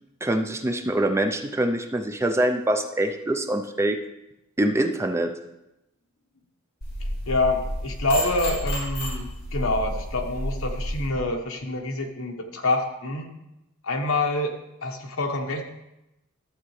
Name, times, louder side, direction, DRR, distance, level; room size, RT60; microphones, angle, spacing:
voice 1, 0.2-4.0 4.6-5.3, right 1 dB, 15° right, 6 dB, 0.4 m, -24 dB
sound 1, 6.8-11.1, equal, 50° left, 3.6 m, -31 dB
voice 2, 7.0-13.3 13.8-14.5 14.8-15.6, left 2 dB, 70° left, 3 dB, 1.1 m, -27 dB
12.5 x 7.3 x 3.2 m, 0.91 s
head